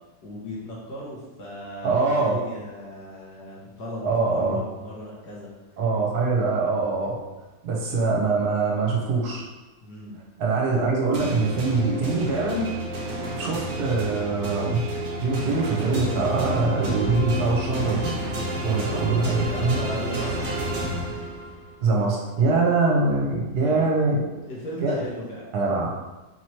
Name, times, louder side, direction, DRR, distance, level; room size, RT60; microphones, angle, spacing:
voice 1, 0.2-5.5 9.8-10.2 19.5-20.4 23.6-23.9 24.5-25.5, equal, 70° left, -5 dB, 1.4 m, -37 dB
voice 2, 1.8-2.4 4.0-4.6 5.8-7.2 7.6-9.4 10.4-12.7 13.4-14.8 15.2-18.1 18.6-19.8 21.8-24.2 24.8-24.9 25.5-25.9, right 3 dB, 65° right, -2 dB, 1.3 m, -23 dB
sound 1, 11.1-21.7, right 1 dB, 50° right, 1.0 m, -30 dB
4.4 x 3.0 x 2.9 m, 1.1 s
omnidirectional pair, 1.9 m